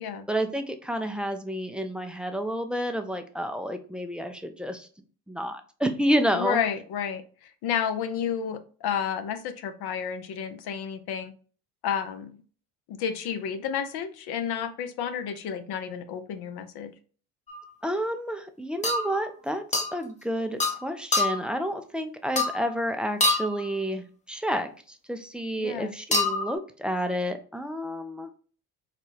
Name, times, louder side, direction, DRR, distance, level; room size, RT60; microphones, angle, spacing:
voice 1, 0.3-4.9 5.3-6.6 17.8-28.3, equal, ahead, 7 dB, 0.4 m, -30 dB
voice 2, 6.3-11.3 11.8-12.4 12.9-16.9 25.6-25.9, left 8 dB, 55° left, 10 dB, 0.7 m, -31 dB
sound 1, 17.5-17.7 18.8-19.2 19.7-20.0 20.6-20.8 21.1-21.5 22.4-22.7 23.2-23.6 26.1-26.5, left 2 dB, 15° left, 0.8 m, -25 dB
4.0 x 2.2 x 3.2 m, 0.40 s
hypercardioid pair, 65°, 47 cm